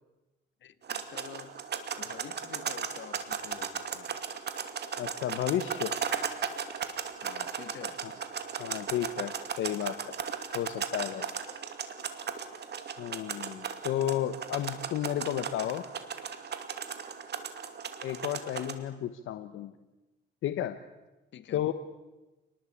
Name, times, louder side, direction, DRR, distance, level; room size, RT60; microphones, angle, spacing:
voice 1, 0.6-1.6 2.0-4.2 7.2-8.0 11.4-11.6 21.3-21.7, left 10 dB, 65° left, 12 dB, 1.7 m, -48 dB
sound 1, 0.8-18.7, right 7 dB, 60° right, 2.5 m, -37 dB
voice 2, 5.0-5.9 8.6-10.1 10.5-11.3 13.0-15.8 18.0-19.7 20.4-20.8 21.5-21.7, left 11 dB, 85° left, 10 dB, 1.2 m, -32 dB
28.0 x 20.0 x 8.6 m, 1.1 s
cardioid pair, 90°, 20 cm